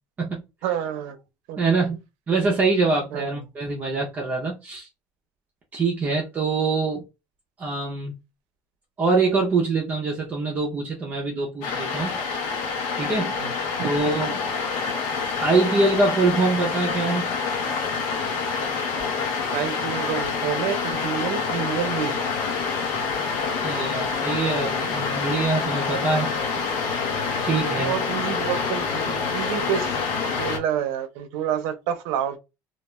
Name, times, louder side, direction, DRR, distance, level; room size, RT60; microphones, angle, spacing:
voice 1, 0.6-1.2 1.5-1.6 3.1-3.3 13.1-13.5 13.8-14.0 19.5-22.2 27.7-30.0 30.4-32.4, right 9 dB, 85° right, 0.5 m, -28 dB
voice 2, 1.6-2.0 2.3-4.9 5.7-7.0 7.6-8.1 9.0-12.2 13.0-13.3 13.8-14.4 15.4-17.3 23.6-26.3 27.4-27.9, right 3 dB, 20° right, 0.5 m, -24 dB
sound 1, 11.6-30.6, left 5 dB, 90° left, 0.7 m, -27 dB
2.3 x 2.2 x 3.0 m
cardioid pair, 165°, 7 cm